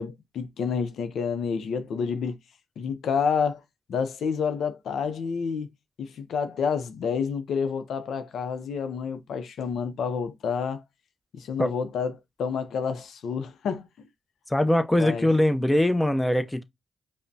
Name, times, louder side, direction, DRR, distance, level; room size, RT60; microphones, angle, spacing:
voice 1, 0.0-2.4 2.8-3.6 3.9-5.7 6.0-10.8 11.3-13.9 15.0-15.3, left 6 dB, 80° left, 0.5 m, -29 dB
voice 2, 14.5-16.6, left 1 dB, 10° left, 0.5 m, -22 dB
5.0 x 2.1 x 2.6 m
cardioid pair, 60°, 0 cm